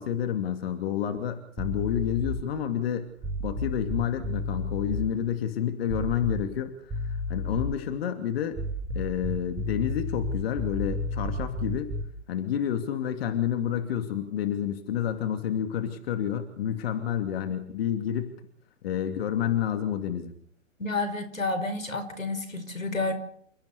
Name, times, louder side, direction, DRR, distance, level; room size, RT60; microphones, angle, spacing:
voice 1, 0.0-3.1 3.4-8.6 8.9-11.9 12.3-18.3 18.8-20.3, left 9 dB, 50° left, 7 dB, 2.7 m, -29 dB
sound 1, 1.6-2.5 3.2-5.1 5.9-6.6 6.9-7.9 8.5-12.2, left 1 dB, 10° right, 1.7 m, -32 dB
voice 2, 20.8-23.1, left 3 dB, 90° left, 10 dB, 5.2 m, -30 dB
29.5 x 15.0 x 6.9 m, 0.64 s
figure-of-eight pair, 125°, 39 cm